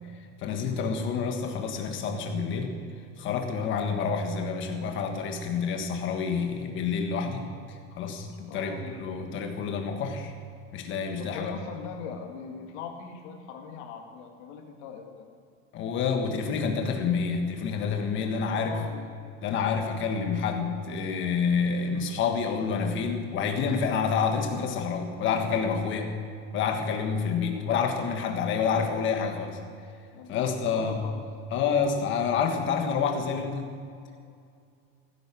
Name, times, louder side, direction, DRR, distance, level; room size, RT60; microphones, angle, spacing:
voice 1, 0.1-2.7 3.2-10.3 10.7-11.5 15.7-18.8 19.4-26.2 26.5-29.6 30.3-31.0 31.5-33.7, left 5 dB, 30° left, 4 dB, 1.5 m, -28 dB
voice 2, 8.5-9.0 11.2-15.3 18.1-19.1 30.1-31.2, left 6 dB, 65° left, 3 dB, 2.2 m, -41 dB
16.0 x 10.5 x 6.3 m, 2.3 s
cardioid pair, 175°, 37 cm